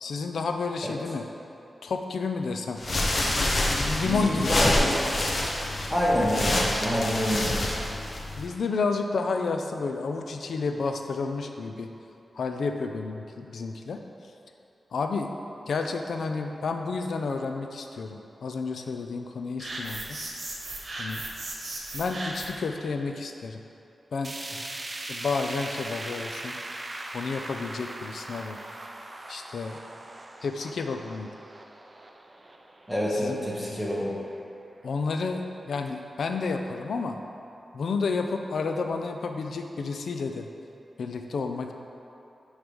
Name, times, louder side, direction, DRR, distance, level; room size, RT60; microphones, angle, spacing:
voice 1, 0.0-1.3 1.8-2.8 3.7-4.7 8.4-11.9 12.3-14.0 14.9-15.3 15.7-20.2 21.0-21.2 21.9-23.6 24.1-24.3 25.1-26.6 27.1-28.6 29.3-29.8 30.4-31.3 33.1-33.8 34.8-37.2 37.7-40.5 41.0-41.7, left 4 dB, 80° left, 5 dB, 0.5 m, -30 dB
sound 1, 2.8-8.5, left 1 dB, 45° left, 0.8 m, -27 dB
voice 2, 4.0-4.9 5.9-7.6 32.9-34.1, equal, 5° left, -5 dB, 1.5 m, -27 dB
sound 2, 19.6-22.7, right 2 dB, 60° right, 1.2 m, -36 dB
sound 3, 24.2-34.4 34.8-34.9 35.3-35.4 36.2-36.3, right 2 dB, 30° right, 0.5 m, -40 dB
9.6 x 3.2 x 5.2 m, 3.0 s
wide cardioid pair, 80°, 0 cm